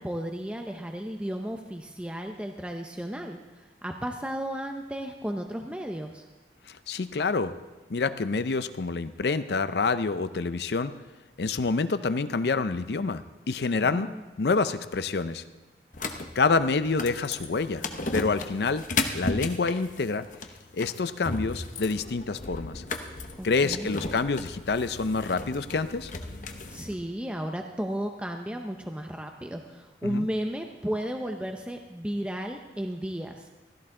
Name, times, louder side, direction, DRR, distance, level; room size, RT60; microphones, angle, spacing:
voice 1, 0.0-6.3 13.8-14.5 23.4-24.1 26.7-33.5, equal, 5° right, 3 dB, 0.6 m, -34 dB
voice 2, 6.7-7.5 7.9-10.9 11.4-14.1 14.4-15.4 16.4-17.9 18.1-18.8 19.1-20.3 20.7-22.8 23.4-26.1 30.0-30.3, left 4 dB, 65° left, 13 dB, 0.5 m, -27 dB
sound 1, 15.9-26.9, left 3 dB, 45° left, 0.9 m, -35 dB
16.0 x 13.5 x 3.8 m, 1.1 s
head